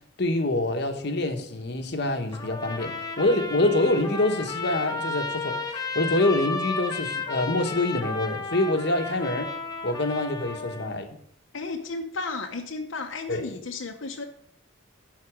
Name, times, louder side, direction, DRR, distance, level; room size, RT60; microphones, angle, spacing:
voice 1, 0.2-9.5 9.8-11.1 13.3-13.5, left 2 dB, 60° left, 5 dB, 1.0 m, -26 dB
Trumpet, 2.3-10.9, left 3 dB, 20° left, 0.8 m, -33 dB
voice 2, 11.5-14.2, left 3 dB, 85° left, 3 dB, 0.8 m, -33 dB
11.0 x 4.1 x 5.9 m, 0.70 s
head